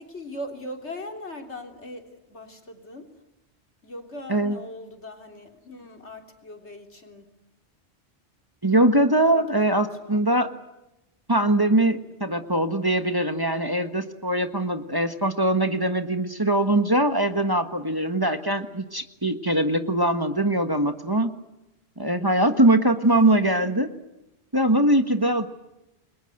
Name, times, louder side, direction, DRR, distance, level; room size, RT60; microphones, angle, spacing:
voice 1, 0.0-3.2 3.8-7.4 9.3-10.2 23.4-23.5, left 1 dB, 80° left, 4 dB, 3.7 m, -40 dB
voice 2, 8.6-10.5 11.3-21.3 22.0-23.9 24.5-25.5, right 1 dB, 20° right, 7 dB, 1.4 m, -22 dB
29.0 x 22.0 x 7.9 m, 0.96 s
omnidirectional pair, 1.1 m